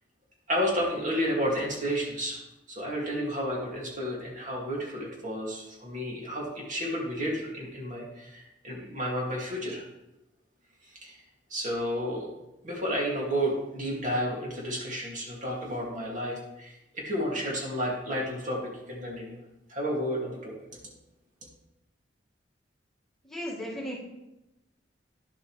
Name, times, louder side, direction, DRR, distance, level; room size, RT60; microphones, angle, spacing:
voice 1, 0.5-2.4 2.7-9.8 11.0-11.2 11.5-12.3 12.6-18.6 18.9-19.3 19.7-20.5, equal, 45° right, -3 dB, 2.2 m, -31 dB
voice 2, 23.2-24.0, equal, 5° left, -7 dB, 1.9 m, -35 dB
10.5 x 7.9 x 3.2 m, 0.95 s
head